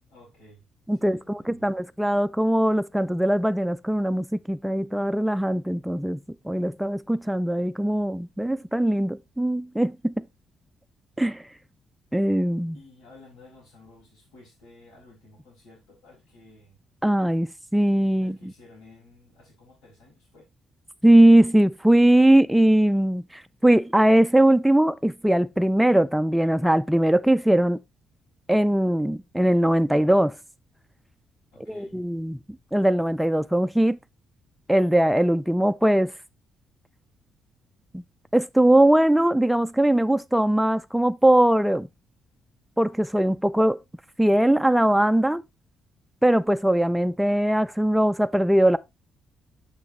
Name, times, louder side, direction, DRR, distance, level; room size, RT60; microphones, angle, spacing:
voice 1, 0.1-0.6 1.0-1.7 12.7-16.8 18.2-20.5 31.5-32.0, left 2 dB, 85° left, 5.4 m, -53 dB
voice 2, 0.9-6.2 6.4-10.2 11.2-11.4 12.1-12.7 17.0-18.4 21.0-27.8 28.5-30.4 31.7-32.4 32.7-34.0 34.7-36.1 37.9-38.0 38.3-41.9 42.8-43.8 44.2-45.4 46.2-48.8, right 1 dB, 5° right, 0.3 m, -20 dB
6.7 x 6.3 x 3.1 m
cardioid pair, 90°, 0 cm